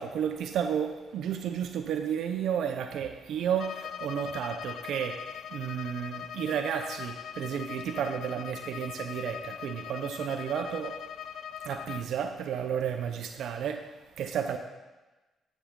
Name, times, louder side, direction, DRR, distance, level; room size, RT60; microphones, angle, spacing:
voice 1, 0.0-11.1 11.6-14.6, right 8 dB, 75° right, 7 dB, 0.6 m, -32 dB
Bowed string instrument, 3.5-12.1, left 9 dB, 65° left, 0.3 m, -41 dB
12.5 x 7.1 x 3.7 m, 1.2 s
cardioid pair, 90°, 0 cm